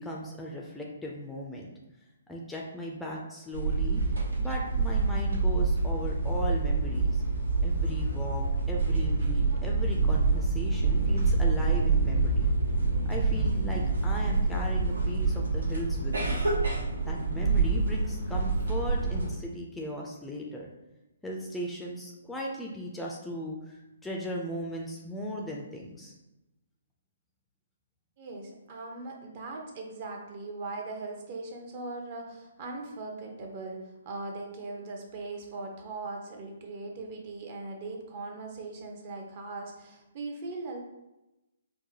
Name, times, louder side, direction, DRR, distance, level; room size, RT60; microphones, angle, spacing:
voice 1, 0.0-1.7 2.3-4.0 4.4-7.2 7.6-12.5 13.1-16.5 17.0-20.7 21.2-26.1, equal, 5° left, -2 dB, 0.4 m, -37 dB
sound 1, 3.5-19.3, right 3 dB, 75° right, 0.8 m, -27 dB
voice 2, 28.2-40.8, right 3 dB, 40° right, 1 dB, 0.7 m, -39 dB
4.6 x 2.1 x 2.8 m, 0.96 s
figure-of-eight pair, 130°, 0 cm